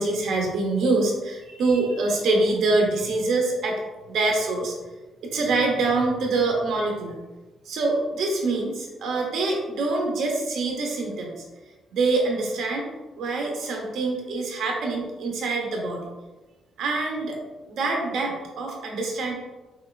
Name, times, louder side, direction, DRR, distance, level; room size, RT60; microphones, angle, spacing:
voice 1, 0.0-3.8 4.1-4.7 5.2-7.2 7.6-11.4 11.9-12.9 13.1-16.1 16.8-17.4 17.7-19.3, right 3 dB, 70° right, 0 dB, 0.9 m, -25 dB
6.2 x 3.2 x 2.4 m, 1.1 s
cardioid pair, 170°, 0 cm